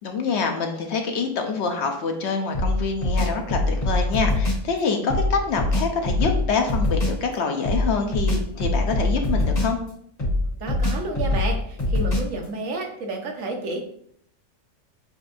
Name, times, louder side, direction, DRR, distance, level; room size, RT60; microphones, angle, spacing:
voice 1, 0.0-9.8, left 5 dB, 65° left, 4 dB, 0.9 m, -26 dB
sound 1, 2.5-4.7 5.1-7.2 7.6-9.9 10.2-12.4, left 2 dB, 85° left, 1.9 m, -23 dB
voice 2, 10.6-13.8, right 2 dB, 85° right, 2 dB, 1.2 m, -30 dB
6.8 x 2.6 x 2.5 m, 0.67 s
omnidirectional pair, 1.3 m